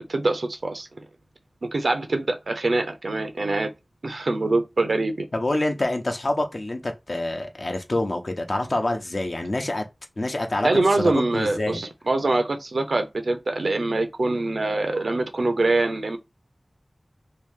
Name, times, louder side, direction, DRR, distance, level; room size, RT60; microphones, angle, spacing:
voice 1, 0.1-1.1 1.7-3.7 4.0-5.3 10.6-16.2, right 2 dB, 85° right, 0.6 m, -24 dB
voice 2, 5.3-9.8 10.2-10.7 11.0-11.8, left 1 dB, 55° left, 0.8 m, -26 dB
2.9 x 2.7 x 3.6 m
wide cardioid pair, 60°, 0 cm